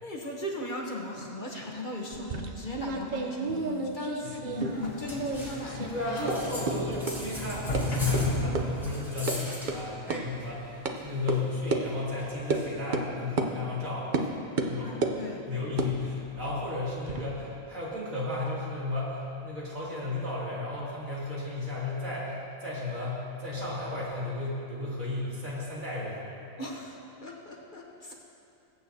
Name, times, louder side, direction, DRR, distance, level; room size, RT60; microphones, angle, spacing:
voice 1, 0.0-6.0 14.8-15.5 26.6-28.1, left 1 dB, 40° left, -1 dB, 1.1 m, -38 dB
sound 1, 2.1-4.9 5.2-5.9 6.3-6.4 6.7-6.8 7.1-7.2 7.7-7.8 8.1-8.2 8.6-8.7 9.0-9.4 9.7-9.8 10.1-10.2 10.9-11.0 11.3-11.4 11.7-11.8 12.5-12.6 12.9-13.1 13.4-13.5 14.1-14.3 14.6-15.2 15.7-17.2, right 3 dB, 45° right, 0.7 m, -31 dB
Sliding door, 4.5-9.2, left 1 dB, 80° left, 1.7 m, -33 dB
sound 2, 5.0-5.7 6.1-10.5 10.9-12.7, equal, ahead, 1.5 m, -42 dB
voice 2, 5.9-14.3 14.6-14.9 15.5-26.2, left 2 dB, 80° right, -7 dB, 3.0 m, -34 dB
21.0 x 8.4 x 2.8 m, 2.8 s
omnidirectional pair, 1.4 m